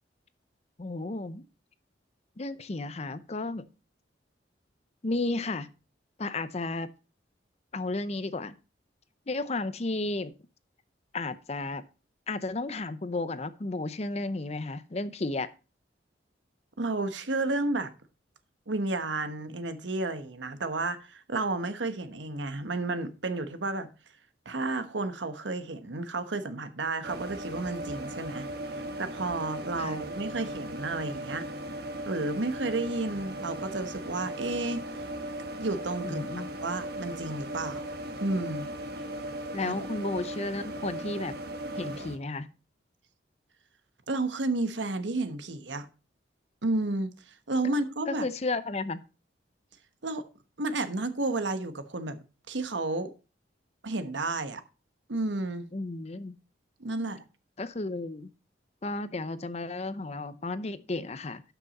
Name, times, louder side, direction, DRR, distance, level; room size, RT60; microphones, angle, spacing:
voice 1, 0.8-1.4 2.4-3.7 5.0-5.7 6.2-6.9 7.7-8.5 9.3-10.3 11.1-11.8 12.3-15.5 29.8-30.0 36.0-36.5 39.5-41.4 41.8-42.5 47.6-47.7 48.1-49.0 55.7-56.4 57.6-58.3 58.8-61.4, left 2 dB, 35° left, 0.6 m, -33 dB
voice 2, 16.8-17.9 18.7-23.9 24.4-31.5 32.1-34.8 35.6-36.3 36.5-37.9 38.2-38.7 39.6-39.7 44.1-45.9 46.6-48.3 50.0-50.3 50.6-52.2 52.5-53.1 53.8-54.6 55.1-55.7 56.8-57.2, right 2 dB, 80° right, 1.1 m, -32 dB
sound 1, 27.0-42.2, right 1 dB, 55° right, 1.3 m, -37 dB
12.0 x 6.1 x 4.1 m
head